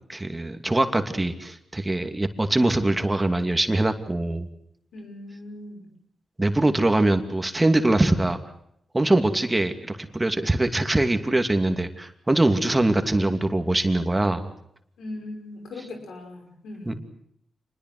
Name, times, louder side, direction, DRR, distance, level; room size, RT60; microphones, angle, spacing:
voice 1, 0.1-4.5 6.4-8.4 8.9-14.5 16.9-17.0, right 2 dB, 20° right, 7 dB, 2.7 m, -23 dB
voice 2, 4.9-5.9 15.0-17.1, left 2 dB, 90° left, 4 dB, 5.8 m, -39 dB
26.5 x 20.5 x 8.0 m, 0.72 s
cardioid pair, 60°, 0 cm